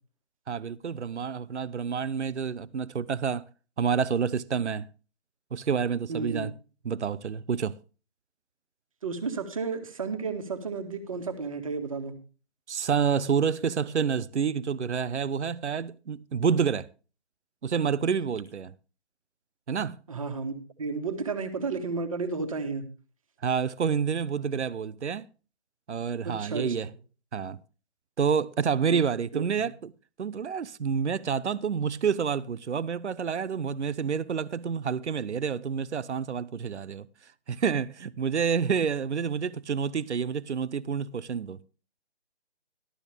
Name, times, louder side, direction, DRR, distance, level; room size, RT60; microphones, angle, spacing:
voice 1, 0.5-3.4 3.8-4.9 5.5-6.5 6.8-7.8 12.7-16.9 17.6-18.7 19.7-20.0 23.4-25.3 25.9-26.9 27.3-27.6 28.2-29.9 30.2-37.1 37.5-41.7, right 6 dB, 80° right, 0.8 m, -28 dB
voice 2, 6.1-6.5 9.0-12.1 20.1-20.5 20.8-22.9 26.2-26.8 28.8-29.0 29.3-29.4, right 4 dB, 30° right, 1.7 m, -32 dB
14.0 x 12.5 x 3.4 m
hypercardioid pair, 175°, 34 cm